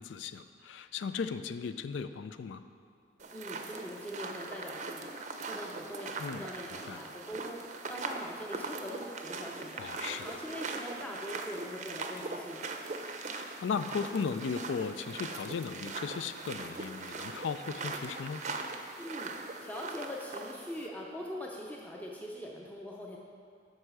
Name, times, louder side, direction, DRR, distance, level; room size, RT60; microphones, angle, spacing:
voice 1, 0.0-2.6 6.2-6.4 6.8-7.0 9.8-10.4 13.2-18.5, left 5 dB, 85° left, 11 dB, 0.4 m, -36 dB
sound 1, 3.2-20.9, right 3 dB, 40° right, 0.5 m, -41 dB
voice 2, 3.3-9.9 10.2-12.8 19.0-23.2, equal, 10° left, -2 dB, 0.5 m, -42 dB
7.9 x 5.5 x 6.1 m, 2.3 s
head